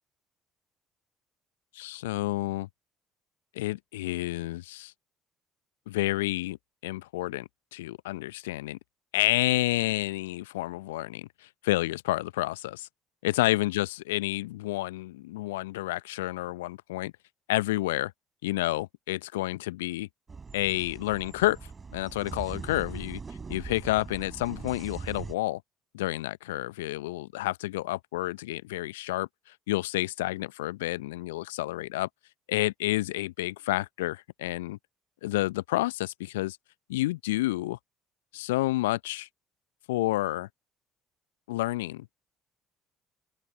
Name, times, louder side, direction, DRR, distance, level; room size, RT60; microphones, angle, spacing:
voice 1, 1.7-2.7 3.5-4.9 5.9-6.6 6.8-8.8 9.1-12.9 13.2-17.1 17.5-18.1 18.4-20.1 20.5-21.6 21.9-23.2 23.5-25.6 25.9-29.3 29.7-32.1 32.5-34.8 35.2-36.6 36.9-37.8 38.3-39.3 39.9-40.5 41.5-42.1, left 18 dB, 75° left, 0.7 m, -29 dB
sound 1, 20.3-25.3, right 4 dB, 30° right, 4.8 m, -41 dB
open air
figure-of-eight pair, 50°, 0 cm